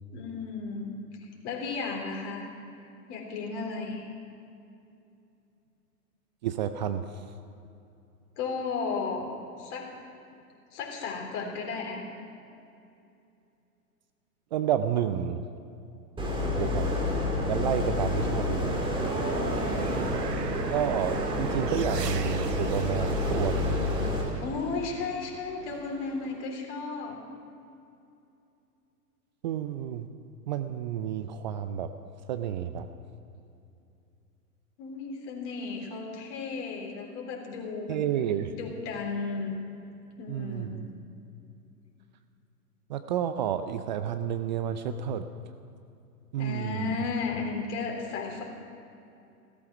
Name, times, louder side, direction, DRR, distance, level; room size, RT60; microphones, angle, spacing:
voice 1, 0.1-2.5 3.1-4.1 8.4-9.3 9.6-9.9 10.7-12.1 19.3-19.9 24.4-27.2 34.8-38.0 38.5-39.5 40.2-40.8 46.4-48.4, left 4 dB, 45° left, 0 dB, 3.5 m, -34 dB
voice 2, 6.4-7.2 14.5-15.4 16.6-16.9 17.5-18.8 20.7-23.8 29.4-30.1 30.5-31.9 32.3-32.9 37.9-38.5 40.3-40.9 42.9-45.2 46.3-47.0, right 9 dB, 30° right, 10 dB, 0.4 m, -30 dB
sound 1, 16.2-24.2, left 2 dB, 10° right, 2.6 m, -29 dB
sound 2, 18.7-26.5, right 7 dB, 85° right, 0.9 m, -40 dB
15.0 x 13.5 x 6.1 m, 2.7 s
figure-of-eight pair, 110°, 47 cm